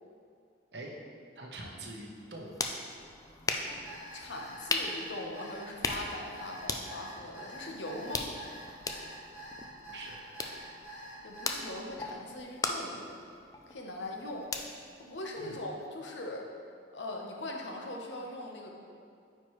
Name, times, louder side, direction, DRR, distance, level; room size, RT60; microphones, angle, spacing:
voice 1, 1.4-2.6 9.9-10.3 15.4-15.6, right 2 dB, 70° right, -1 dB, 1.0 m, -44 dB
sound 1, 2.1-15.9, left 3 dB, 20° left, 0.4 m, -39 dB
Alarm, 3.8-11.7, right 1 dB, 50° left, 1.5 m, -47 dB
voice 2, 4.1-8.3 11.2-13.1 13.7-14.5 15.0-16.5 16.9-18.7, left 1 dB, 90° left, 1 dB, 0.9 m, -41 dB
9.1 x 4.5 x 3.1 m, 2.3 s
head